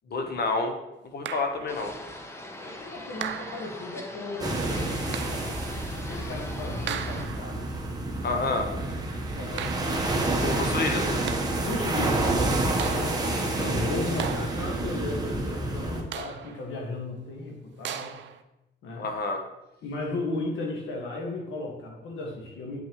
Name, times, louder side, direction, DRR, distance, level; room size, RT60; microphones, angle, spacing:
voice 1, 0.1-0.7 1.1-2.0 8.2-8.7 10.4-11.2 13.6-13.7 19.0-19.4, left 3 dB, 55° left, 5 dB, 1.1 m, -29 dB
sound 1, 1.3-1.8 3.2-3.9 5.1-5.6 6.9-7.6 9.6-10.2 11.1-11.7 12.8-13.4 14.2-14.9 16.1-16.7 17.8-18.4, right 9 dB, 70° right, 0.5 m, -37 dB
sound 2, 1.7-7.2, left 1 dB, 15° left, 0.9 m, -41 dB
voice 2, 2.6-4.9 6.0-7.7 8.3-8.9 9.3-10.3 11.6-12.5 12.8-13.2 13.7-18.2 18.8-19.1 19.8-22.8, left 2 dB, 80° left, -1 dB, 1.8 m, -35 dB
sound 3, 4.4-16.0, right 2 dB, 20° right, 1.1 m, -29 dB
8.7 x 5.6 x 3.1 m, 0.93 s
cardioid pair, 90°, 20 cm